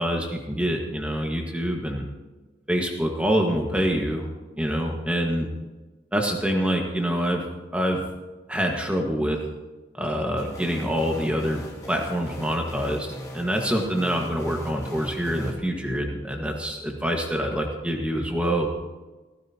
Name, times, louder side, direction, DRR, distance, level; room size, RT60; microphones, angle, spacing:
voice 1, 0.0-2.0 2.7-4.3 4.6-5.5 6.1-7.4 7.7-8.0 8.5-9.4 9.9-11.6 11.9-18.7, equal, 5° right, 1 dB, 1.7 m, -26 dB
sound 1, 10.4-15.5, equal, 20° left, 2.0 m, -39 dB
16.5 x 15.0 x 3.0 m, 1.2 s
head